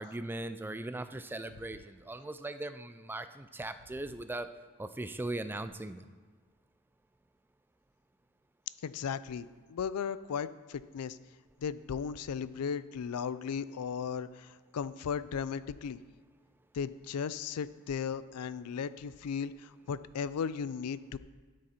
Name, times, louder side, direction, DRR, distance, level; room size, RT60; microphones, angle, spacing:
voice 1, 0.0-4.5 4.8-6.0, right 2 dB, 10° right, 11 dB, 0.3 m, -39 dB
voice 2, 8.8-11.2 11.6-16.0 16.7-21.2, left 6 dB, 90° left, 16 dB, 0.4 m, -36 dB
12.5 x 6.3 x 4.3 m, 1.5 s
head